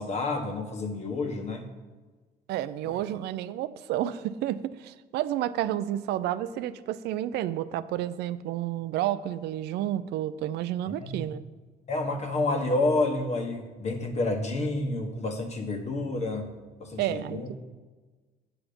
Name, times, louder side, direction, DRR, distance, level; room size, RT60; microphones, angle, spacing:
voice 1, 0.0-1.7 2.8-3.0 10.9-11.2 11.9-16.5 16.8-17.5, left 2 dB, 40° left, 5 dB, 1.4 m, -29 dB
voice 2, 2.5-11.4 17.0-17.5, right 12 dB, 80° right, 14 dB, 0.5 m, -30 dB
8.6 x 7.0 x 5.3 m, 1.3 s
cardioid pair, 110°, 17 cm